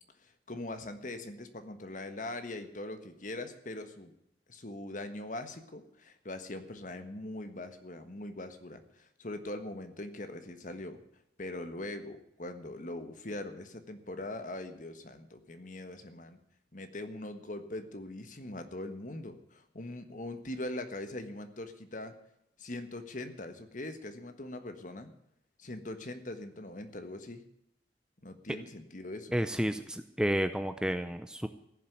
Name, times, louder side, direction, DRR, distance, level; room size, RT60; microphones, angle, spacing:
voice 1, 0.2-4.1 4.5-11.0 11.4-16.4 16.7-22.1 22.6-25.1 25.6-27.4 28.2-29.4, left 1 dB, 45° left, 8 dB, 1.5 m, -41 dB
voice 2, 29.3-31.5, equal, 5° right, 9 dB, 0.6 m, -31 dB
15.5 x 7.4 x 9.4 m, 0.81 s
head